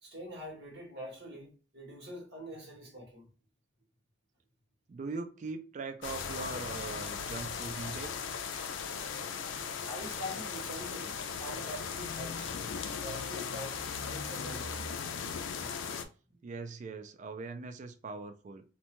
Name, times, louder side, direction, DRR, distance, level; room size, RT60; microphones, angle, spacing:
voice 1, 0.0-3.3 9.8-12.6 12.9-14.9 16.2-16.3, equal, 60° right, 1.3 m, -44 dB
voice 2, 4.9-8.1 16.4-18.6, right 4 dB, 40° right, 0.3 m, -41 dB
sound 1, 6.0-16.0, left 6 dB, 80° left, 0.4 m, -38 dB
2.7 x 2.1 x 2.9 m
head